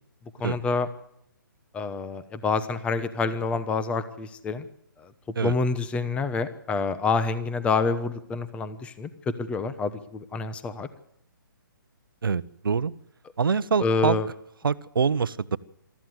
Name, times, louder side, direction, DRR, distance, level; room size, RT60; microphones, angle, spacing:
voice 1, 0.4-0.9 1.7-4.6 5.4-9.1 9.5-10.9 13.8-14.3, left 4 dB, 10° left, 13 dB, 1.0 m, -27 dB
voice 2, 12.2-12.9 13.4-14.2 14.6-15.6, right 6 dB, 80° right, 15 dB, 0.9 m, -25 dB
23.0 x 14.0 x 8.0 m, 0.75 s
hypercardioid pair, 150°, 11 cm